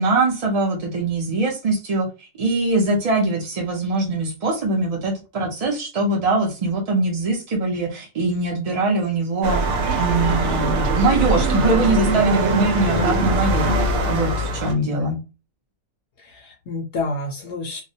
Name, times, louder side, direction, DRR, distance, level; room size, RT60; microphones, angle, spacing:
voice 1, 0.0-2.1 2.4-9.6 9.9-13.7 14.0-15.2, right 2 dB, 50° right, -2 dB, 0.4 m, -22 dB
sound 1, 9.4-14.7, right 2 dB, 80° right, 1.0 m, -21 dB
voice 2, 14.6-15.2 16.2-17.8, left 2 dB, 65° left, 1 dB, 0.7 m, -30 dB
2.3 x 2.1 x 2.7 m, 0.30 s
omnidirectional pair, 1.4 m